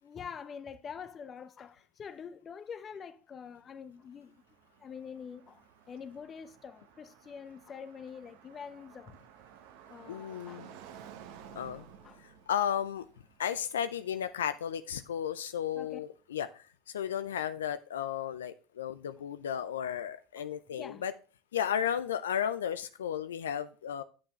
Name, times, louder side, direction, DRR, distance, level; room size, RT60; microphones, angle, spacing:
voice 1, 0.0-4.4 4.8-9.2 9.9-11.0 11.3-11.4 12.0-12.2 15.7-16.0 20.4-20.5 20.8-21.0, left 7 dB, 35° left, 0.8 m, -46 dB
Car passing by, 3.6-15.7, right 9 dB, 75° right, 1.0 m, -55 dB
voice 2, 10.1-10.8 11.6-11.8 12.2-13.1 13.4-21.1 21.5-24.0, left 9 dB, 90° left, 0.4 m, -34 dB
8.6 x 7.1 x 3.1 m
hypercardioid pair, 80°, 0 cm